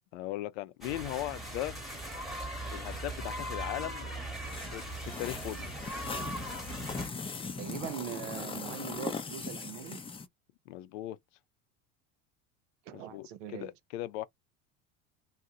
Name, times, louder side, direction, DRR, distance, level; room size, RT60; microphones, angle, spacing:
voice 1, 0.1-1.8 2.7-4.1 4.7-5.7 10.7-11.2 12.9-14.3, left 15 dB, 75° left, 0.6 m, -38 dB
sound 1, 0.8-7.1, right 1 dB, ahead, 1.1 m, -39 dB
sound 2, 2.3-10.3, left 4 dB, 15° left, 0.5 m, -41 dB
voice 2, 7.6-10.0 12.9-13.7, right 11 dB, 85° right, 0.7 m, -41 dB
2.8 x 2.1 x 3.7 m
supercardioid pair, 100°, 37 cm